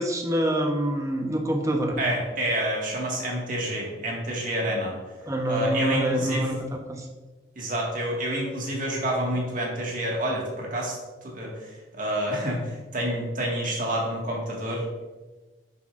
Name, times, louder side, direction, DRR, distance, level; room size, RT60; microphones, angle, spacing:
voice 1, 0.0-2.0 5.3-6.6 6.9-7.0, right 1 dB, 20° right, 3 dB, 0.9 m, -26 dB
voice 2, 2.0-5.0 5.5-6.5 7.6-11.0 11.2-14.8, right 1 dB, 50° right, -2 dB, 1.9 m, -28 dB
9.0 x 7.2 x 2.6 m, 1.2 s
head